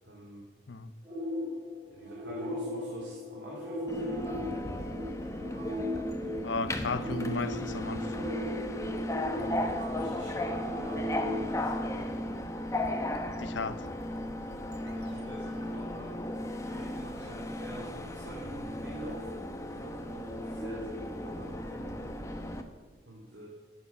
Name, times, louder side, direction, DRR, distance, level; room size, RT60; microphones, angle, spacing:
voice 1, 0.1-0.4 2.0-4.6 9.2-11.9 14.6-22.1 23.1-23.5, right 1 dB, 80° right, -4 dB, 3.1 m, -47 dB
sound 1, 1.1-12.4, left 1 dB, 25° right, 4.1 m, -38 dB
Subway metro underground, 3.9-22.6, left 1 dB, 15° left, 1.0 m, -36 dB
sound 2, 4.2-16.8, right 1 dB, 60° right, 1.8 m, -51 dB
voice 2, 6.4-8.3 13.4-13.8, left 4 dB, 80° left, 13 dB, 0.7 m, -34 dB
13.5 x 9.7 x 7.2 m, 1.3 s
head